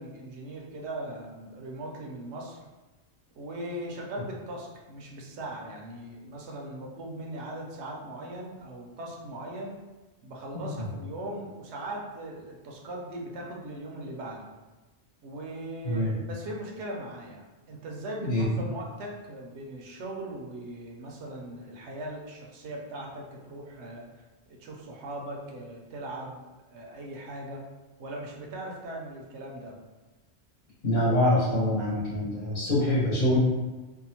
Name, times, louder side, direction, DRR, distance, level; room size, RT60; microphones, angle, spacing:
voice 1, 0.0-2.6 3.3-9.8 10.2-14.5 15.2-24.1 24.5-26.4 26.7-27.6 28.0-29.8, right 1 dB, 80° right, -1 dB, 0.9 m, -39 dB
voice 2, 10.5-10.9 15.8-16.1 18.2-18.6 30.8-33.4, left 1 dB, 50° left, -9 dB, 1.0 m, -25 dB
2.6 x 2.2 x 2.8 m, 1.2 s
omnidirectional pair, 1.1 m